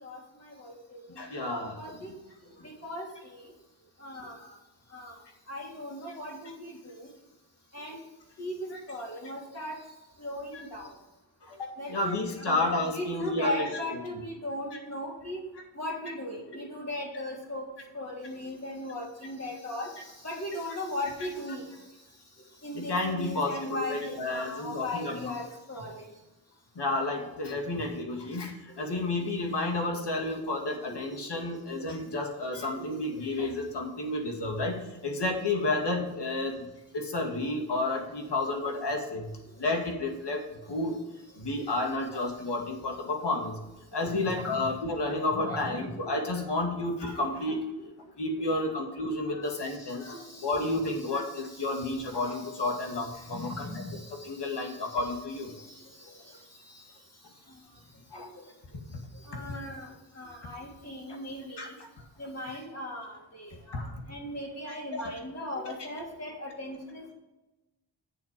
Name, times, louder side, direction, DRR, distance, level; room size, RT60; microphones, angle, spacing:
voice 1, 0.0-1.4 1.8-2.1 2.8-3.1 3.3-3.4 4.0-4.3 4.9-5.1 5.5-7.1 7.7-8.0 8.4-8.5 8.9-9.8 10.2-10.9 11.8-15.4 15.8-17.6 17.9-19.9 20.2-21.6 22.6-26.0 27.7-27.8 28.9-29.3 31.5-31.6 32.7-33.0 33.4-33.5 42.1-42.2 44.0-44.6 45.3-46.1 47.8-47.9 48.4-48.5 49.7-53.9 54.6-55.0 55.5-55.6 59.3-59.9 60.2-61.7 62.2-67.1, left 1 dB, 35° left, -2 dB, 3.5 m, -38 dB
voice 2, 1.1-1.8 10.5-10.6 11.4-13.7 22.7-25.3 26.8-36.6 36.9-39.3 39.6-41.0 41.4-43.6 43.9-47.6 48.2-50.2 50.4-53.7 54.2-55.5 58.1-58.3 58.9-59.0 61.6-61.9 63.7-63.9 64.9-65.0, left 2 dB, 60° left, 2 dB, 2.3 m, -31 dB
8.2 x 7.3 x 5.2 m, 1.1 s
wide cardioid pair, 95°, 46 cm